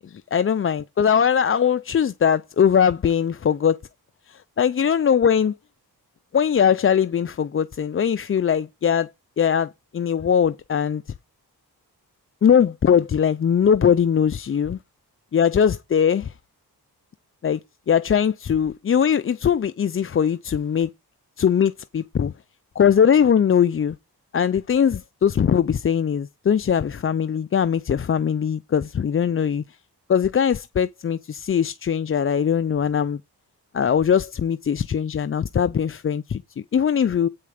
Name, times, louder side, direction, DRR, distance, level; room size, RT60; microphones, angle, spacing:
voice 1, 0.3-3.8 4.3-5.5 6.3-9.1 9.4-11.0 12.4-14.8 15.3-16.3 17.4-17.6 17.9-20.9 21.4-22.3 22.8-24.0 24.3-29.8 30.1-33.2 33.7-37.3, left 8 dB, 35° left, 0.4 m, -20 dB
8.5 x 6.5 x 5.0 m
cardioid pair, 70°, 40 cm